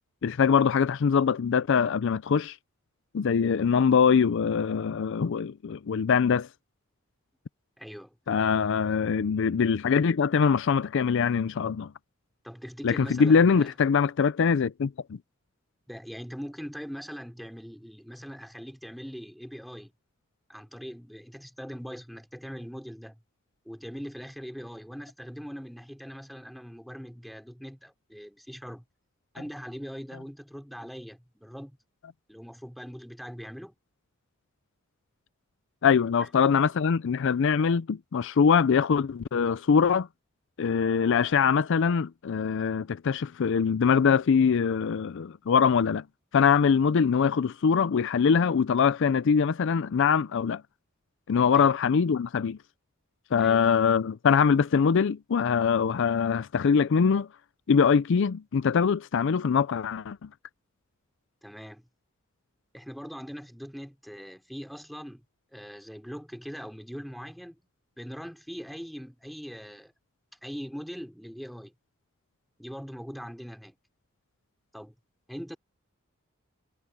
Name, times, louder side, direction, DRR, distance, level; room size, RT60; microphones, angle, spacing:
voice 1, 0.2-2.6 3.1-6.5 8.3-11.9 12.8-15.2 35.8-40.1 40.6-46.0 46.3-50.6 51.3-52.6 53.3-57.3 57.7-60.3, left 6 dB, 65° left, 0.4 m, -23 dB
voice 2, 7.8-8.2 12.4-13.7 15.9-19.9 20.5-23.2 23.7-28.8 29.3-31.8 32.3-33.8 36.2-36.3 51.5-51.7 53.4-53.6 61.4-61.9 62.7-65.2 65.5-67.6 68.0-69.9 70.4-71.7 72.6-73.8 74.7-74.9 75.3-75.6, equal, ahead, 3.9 m, -41 dB
head